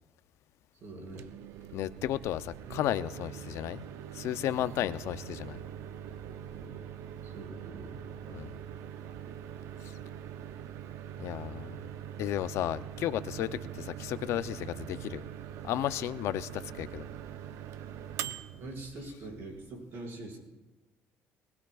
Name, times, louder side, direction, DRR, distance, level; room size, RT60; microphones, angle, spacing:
voice 1, 0.8-1.3 4.8-5.0 6.5-6.9 7.2-8.0 18.6-20.4, right 2 dB, 60° right, -1 dB, 5.6 m, -44 dB
Microwave oven, 1.0-19.8, right 10 dB, 80° right, 0.6 m, -43 dB
voice 2, 1.7-3.8 4.1-5.6 8.3-8.5 9.8-9.9 11.2-11.8 12.2-15.2 15.6-17.0, left 12 dB, 75° left, 13 dB, 0.5 m, -33 dB
22.0 x 19.5 x 2.4 m, 1.1 s
cardioid pair, 110°, 5 cm